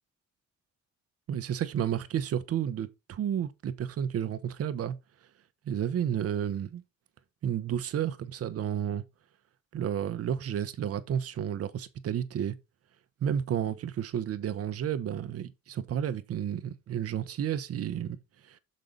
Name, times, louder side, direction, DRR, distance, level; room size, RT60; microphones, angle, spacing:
voice 1, 1.3-4.9 5.7-6.8 7.4-9.0 9.7-12.5 13.2-18.2 18.4-18.6, right 9 dB, 55° right, 0.9 m, -31 dB
6.6 x 5.1 x 3.9 m
cardioid pair, 130°, 29 cm